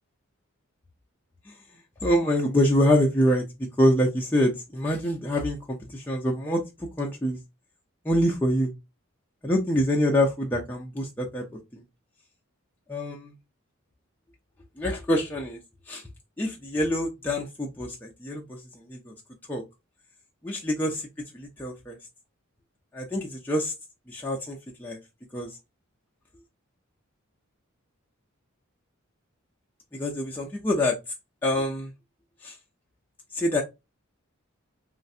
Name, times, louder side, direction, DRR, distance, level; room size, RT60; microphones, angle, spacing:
voice 1, 2.0-3.4 3.8-7.4 8.1-8.7 9.4-11.4 11.7-11.8 12.9-13.1 14.8-15.6 15.9-16.0 16.4-18.6 18.9-19.1 19.5-19.6 20.4-21.1 21.3-22.0 22.9-23.7 24.1-25.0 25.3-25.5 30.0-30.9 31.4-31.9 32.4-32.5 33.3-33.6, equal, 10° left, 0.4 m, -25 dB
3.1 x 2.4 x 2.6 m
head